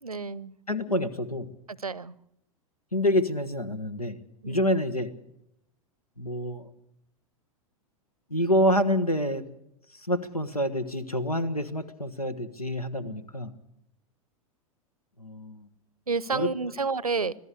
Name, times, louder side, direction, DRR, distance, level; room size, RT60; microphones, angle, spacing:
voice 1, 0.0-0.5 1.7-2.2 4.4-4.8 13.0-13.3 16.1-17.4, right 4 dB, 85° right, 23 dB, 0.7 m, -30 dB
voice 2, 0.7-1.5 2.9-4.2 4.5-5.1 6.2-6.7 8.3-9.5 9.9-13.5 15.2-15.7 16.3-16.5, equal, 85° left, 15 dB, 1.5 m, -27 dB
26.0 x 17.5 x 6.8 m, 0.77 s
figure-of-eight pair, 90°, 18 cm